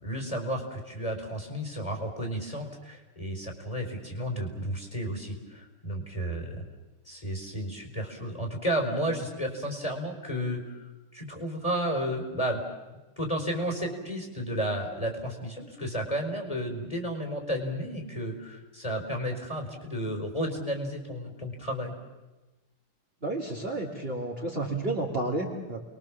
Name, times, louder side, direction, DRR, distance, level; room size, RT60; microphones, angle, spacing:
voice 1, 0.0-6.6 7.1-12.6 13.2-21.9, equal, 15° left, 3 dB, 4.2 m, -32 dB
voice 2, 23.2-25.8, right 2 dB, 25° right, -1 dB, 3.1 m, -31 dB
30.0 x 22.5 x 7.3 m, 1.1 s
omnidirectional pair, 2.4 m